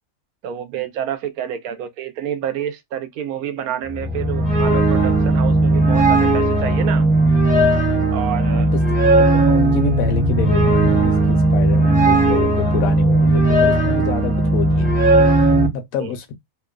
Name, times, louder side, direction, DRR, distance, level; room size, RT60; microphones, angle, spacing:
voice 1, 0.4-7.1 8.1-8.7 16.0-16.1, right 10 dB, 85° right, 1.1 m, -28 dB
sound 1, 3.9-15.7, right 2 dB, 15° right, 0.3 m, -16 dB
voice 2, 8.4-16.3, left 8 dB, 75° left, 1.0 m, -28 dB
2.9 x 2.1 x 2.3 m
omnidirectional pair, 1.5 m